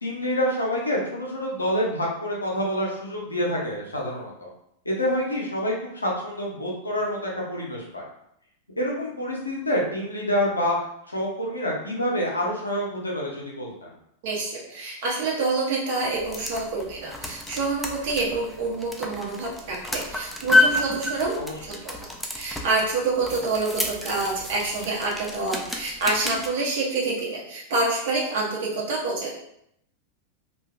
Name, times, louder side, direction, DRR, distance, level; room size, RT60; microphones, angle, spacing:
voice 1, 0.0-4.5 4.8-8.1 8.8-10.8 11.1-13.9 21.4-21.5, equal, 80° left, -3 dB, 0.6 m, -27 dB
voice 2, 14.2-21.4 21.7-21.8 22.3-29.3, right 3 dB, 55° right, -3 dB, 0.8 m, -27 dB
sound 1, 16.0-26.5, left 2 dB, 5° left, 0.3 m, -29 dB
2.6 x 2.3 x 2.3 m, 0.74 s
figure-of-eight pair, 90°, 0 cm